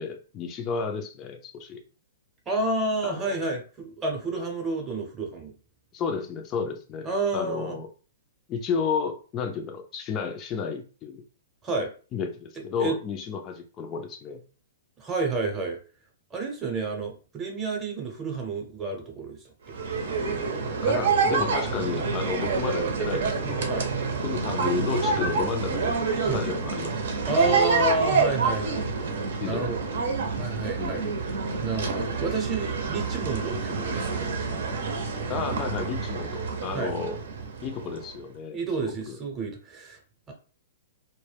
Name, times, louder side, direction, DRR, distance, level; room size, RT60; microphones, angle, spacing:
voice 1, 0.0-1.8 3.0-3.3 5.9-7.9 8.5-11.2 12.1-14.4 20.8-23.7 24.2-26.0 26.3-28.1 28.5-28.6 29.4-30.0 30.8-31.0 35.3-37.2 37.6-38.6 38.9-39.2, left 5 dB, 30° left, 4 dB, 0.4 m, -32 dB
voice 2, 2.5-5.5 7.0-7.8 11.6-11.9 12.8-13.0 15.0-15.8 16.3-19.4 23.7-23.9 26.3-26.4 27.3-28.8 29.4-29.8 30.3-31.1 31.6-34.6 36.7-36.9 38.5-40.0 40.3-40.4, right 3 dB, 20° right, 2 dB, 0.8 m, -30 dB
sound 1, 19.7-38.1, right 4 dB, 70° right, 0.7 m, -27 dB
2.2 x 2.1 x 3.3 m, 0.37 s
hypercardioid pair, 130°, 0 cm